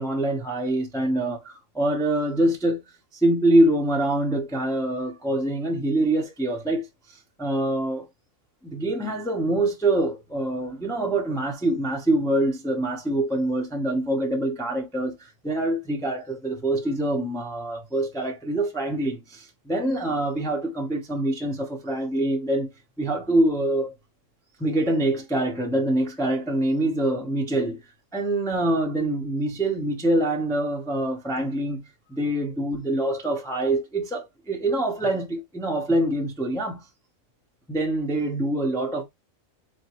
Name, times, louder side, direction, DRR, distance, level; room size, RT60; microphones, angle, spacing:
voice 1, 0.0-2.8 3.2-6.9 7.4-8.1 8.6-22.7 23.0-23.9 24.6-27.8 28.1-36.8 37.7-39.0, right 1 dB, 5° left, 0.5 m, -25 dB
3.9 x 3.6 x 2.9 m
omnidirectional pair, 1.4 m